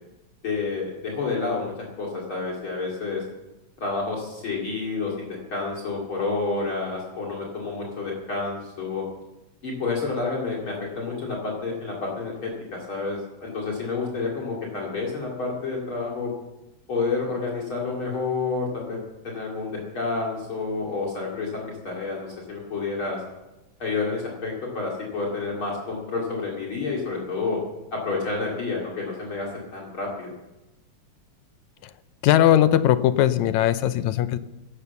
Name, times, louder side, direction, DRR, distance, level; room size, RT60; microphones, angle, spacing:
voice 1, 0.4-1.7 2.0-3.2 3.8-9.0 9.6-16.3 16.9-23.2 23.8-27.6 27.9-30.3, left 4 dB, 45° left, -1 dB, 3.1 m, -29 dB
voice 2, 32.2-34.4, left 11 dB, 80° left, 13 dB, 2.0 m, -19 dB
17.0 x 11.5 x 7.0 m, 1.0 s
omnidirectional pair, 3.4 m